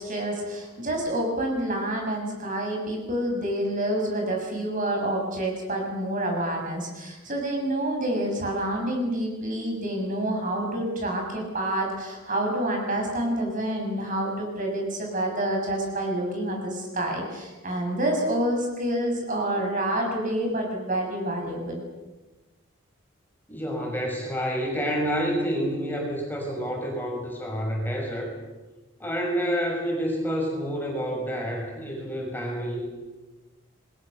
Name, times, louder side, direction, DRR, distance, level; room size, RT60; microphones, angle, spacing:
voice 1, 0.0-21.8, right 1 dB, 40° right, 1 dB, 7.4 m, -28 dB
voice 2, 23.5-28.3 29.0-32.9, equal, 10° left, -1 dB, 6.2 m, -28 dB
29.5 x 21.5 x 6.9 m, 1.2 s
head